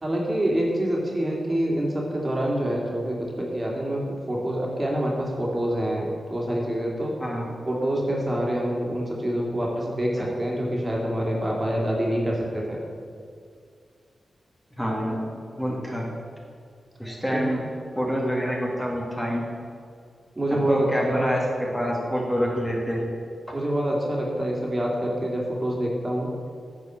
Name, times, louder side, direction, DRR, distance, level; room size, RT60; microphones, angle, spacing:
voice 1, 0.0-7.1 7.7-12.8 17.3-17.6 20.3-21.4 23.5-26.3, right 1 dB, 30° right, -2 dB, 2.3 m, -26 dB
voice 2, 14.8-15.2 15.5-16.0 17.0-17.6 18.0-19.6 20.5-21.4 21.7-23.1, equal, 10° left, -3 dB, 1.9 m, -27 dB
10.0 x 4.8 x 7.3 m, 2.3 s
cardioid pair, 70°, 0 cm